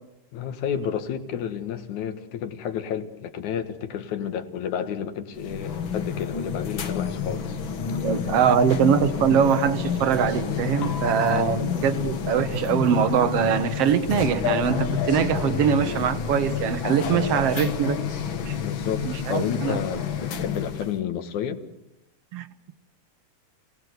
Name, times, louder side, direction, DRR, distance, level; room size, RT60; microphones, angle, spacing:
voice 1, 0.3-7.6 10.8-10.9 11.3-11.6 18.6-21.6, left 8 dB, 70° left, 2.8 m, -31 dB
sound 1, 5.4-21.0, left 7 dB, 50° left, 1.6 m, -29 dB
voice 2, 8.0-18.0 18.5-18.6 19.0-19.8 22.3-22.5, right 8 dB, 60° right, 1.7 m, -22 dB
29.5 x 18.5 x 8.0 m
omnidirectional pair, 3.7 m